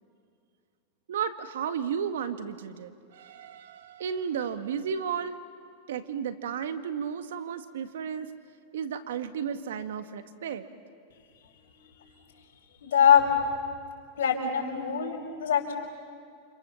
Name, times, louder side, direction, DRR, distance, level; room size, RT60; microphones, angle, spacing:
voice 1, 1.1-5.4 5.9-8.3 8.7-10.7, right 7 dB, 80° right, 10 dB, 1.8 m, -33 dB
voice 2, 12.8-13.2 14.2-15.7, left 8 dB, 80° left, 0 dB, 6.0 m, -23 dB
29.5 x 28.0 x 7.2 m, 2.3 s
hypercardioid pair, 110°, 0 cm